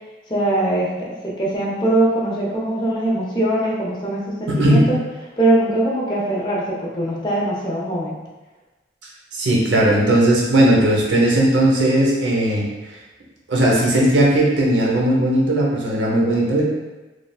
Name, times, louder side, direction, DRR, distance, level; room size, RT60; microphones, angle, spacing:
voice 1, 0.3-5.0 5.4-8.2, right 1 dB, 25° left, -5 dB, 0.5 m, -21 dB
voice 2, 4.5-4.9 9.3-12.7 13.5-16.6, right 1 dB, 80° right, -3 dB, 0.7 m, -17 dB
3.2 x 2.3 x 2.3 m, 1.1 s
head